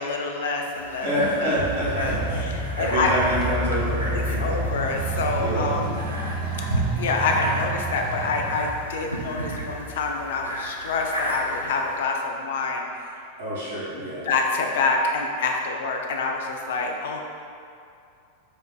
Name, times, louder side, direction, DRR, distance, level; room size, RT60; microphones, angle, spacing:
voice 1, 0.0-1.1 1.4-1.6 1.9-3.1 4.1-6.1 7.0-12.8 13.9-17.2, left 4 dB, 60° left, 1 dB, 0.4 m, -27 dB
sound 1, 0.7-12.0, right 1 dB, 90° right, 0.4 m, -34 dB
voice 2, 1.0-2.4 2.8-4.8 5.4-5.7 13.4-14.3, equal, 65° right, -8 dB, 1.1 m, -27 dB
sound 2, 1.6-10.5, right 2 dB, 30° right, 0.5 m, -30 dB
5.0 x 2.5 x 2.3 m, 2.5 s
figure-of-eight pair, 90°, 0 cm